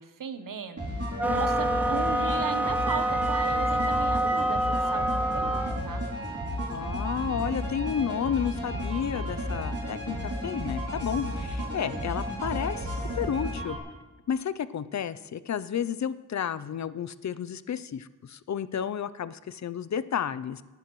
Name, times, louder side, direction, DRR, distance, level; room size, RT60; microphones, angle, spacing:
voice 1, 0.0-6.0, right 7 dB, 80° right, 9 dB, 0.9 m, -36 dB
sound 1, 0.8-13.8, equal, 50° right, 2.8 m, -33 dB
sound 2, 1.2-5.8, right 1 dB, 5° right, 0.3 m, -27 dB
voice 2, 6.7-10.2 10.4-13.8 14.3-20.6, left 8 dB, 60° left, 15 dB, 0.5 m, -31 dB
18.0 x 10.5 x 3.1 m, 1.2 s
wide cardioid pair, 100°, 32 cm